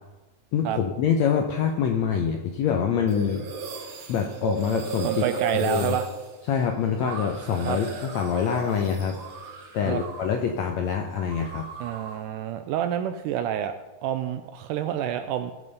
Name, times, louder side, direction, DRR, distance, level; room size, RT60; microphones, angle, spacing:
voice 1, 0.5-3.4 4.1-6.0 6.5-9.2 9.7-11.7, left 7 dB, 75° left, 3 dB, 1.6 m, -25 dB
sound 1, 3.1-10.5 10.7-12.3, right 5 dB, 60° right, 1.5 m, -36 dB
voice 2, 5.0-6.1 7.6-7.8 9.9-10.0 11.8-13.7 14.0-15.5, right 10 dB, 80° right, 9 dB, 1.9 m, -28 dB
16.0 x 5.5 x 5.3 m, 1.1 s
omnidirectional pair, 4.1 m